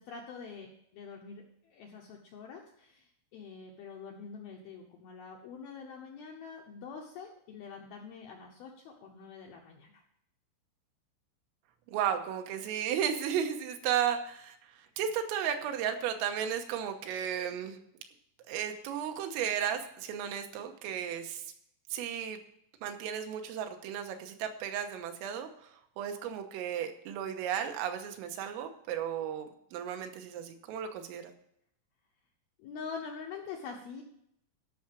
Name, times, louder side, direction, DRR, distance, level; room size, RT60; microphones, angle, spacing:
voice 1, 0.0-10.0 32.6-34.0, left 5 dB, 80° left, 0 dB, 2.2 m, -45 dB
voice 2, 11.9-17.8 18.5-21.5 21.9-22.4 22.8-31.2, right 9 dB, 90° right, 6 dB, 3.6 m, -34 dB
13.5 x 5.9 x 6.1 m, 0.73 s
omnidirectional pair, 5.8 m